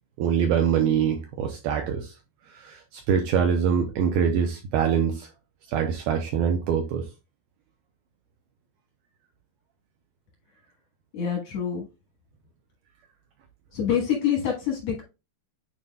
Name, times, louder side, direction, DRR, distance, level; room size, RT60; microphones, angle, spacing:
voice 1, 0.2-2.1 2.5-5.3 5.7-7.0, right 7 dB, 80° right, 2.2 m, -24 dB
voice 2, 11.1-11.8 13.7-15.0, left 8 dB, 70° left, 1.6 m, -26 dB
9.5 x 4.4 x 2.2 m
omnidirectional pair, 5.0 m